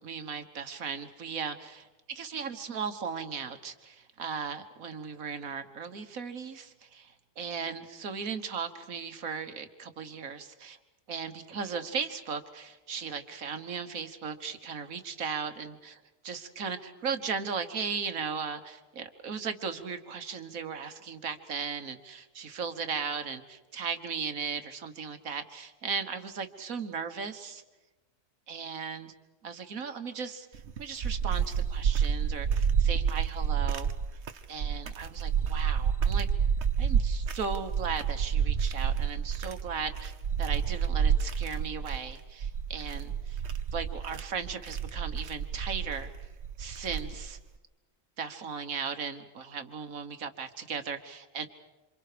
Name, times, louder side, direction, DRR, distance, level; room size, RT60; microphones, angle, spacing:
voice 1, 0.0-10.8 11.1-27.6 28.5-29.1 29.4-33.9 34.5-36.3 36.8-40.1 40.4-43.4 43.7-46.3 46.6-47.4 48.2-51.5, right 6 dB, 80° right, 8 dB, 1.9 m, -37 dB
sound 1, 30.5-47.4, right 7 dB, 55° right, 1.2 m, -29 dB
28.0 x 27.0 x 5.1 m, 1.1 s
omnidirectional pair, 1.4 m